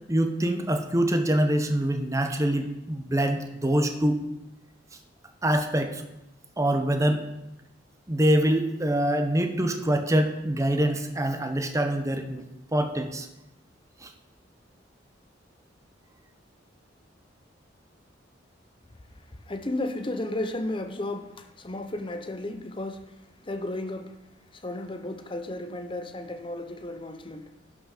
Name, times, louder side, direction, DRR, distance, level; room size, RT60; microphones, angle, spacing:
voice 1, 0.1-4.2 5.4-6.0 6.6-7.3 8.1-12.4 12.7-13.3 14.0-14.1, right 1 dB, 15° right, 0.8 m, -25 dB
voice 2, 19.5-23.1 23.4-24.2 24.5-27.5, left 1 dB, 25° left, 0.7 m, -33 dB
11.5 x 6.2 x 5.0 m
head